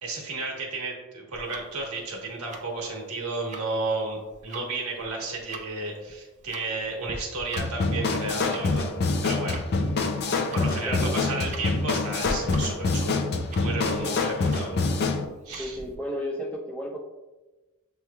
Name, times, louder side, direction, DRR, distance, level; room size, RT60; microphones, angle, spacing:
voice 1, 0.0-8.9 9.2-9.6 10.5-13.2 13.6-14.8 15.4-15.8, right 3 dB, 85° right, -1 dB, 1.2 m, -33 dB
Tick-tock, 1.3-16.0, right 2 dB, 35° right, 0.4 m, -43 dB
sound 1, 7.6-15.2, left 3 dB, 45° left, 0.4 m, -26 dB
voice 2, 15.6-17.0, equal, 5° left, -3 dB, 0.6 m, -33 dB
6.9 x 3.1 x 2.3 m, 1.1 s
head